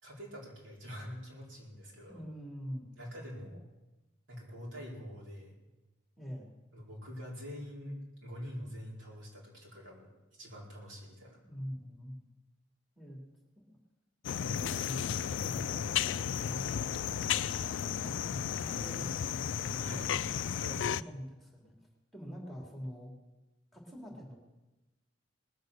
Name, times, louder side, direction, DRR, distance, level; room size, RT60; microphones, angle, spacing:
voice 1, 0.0-2.2 3.0-3.6 4.3-5.5 6.7-10.1 10.4-11.4 19.6-20.2 20.5-21.0, equal, 70° right, -4 dB, 4.5 m, -45 dB
voice 2, 2.1-2.9 3.4-3.6 6.2-6.5 11.4-12.2 12.9-13.2 13.6-13.8 14.3-17.6 18.0-20.5 20.9-23.1 23.7-24.5, equal, ahead, -1 dB, 2.6 m, -45 dB
sound 1, 14.2-21.0, left 9 dB, 70° left, 0.4 m, -34 dB
19.5 x 8.1 x 6.6 m, 1.1 s
head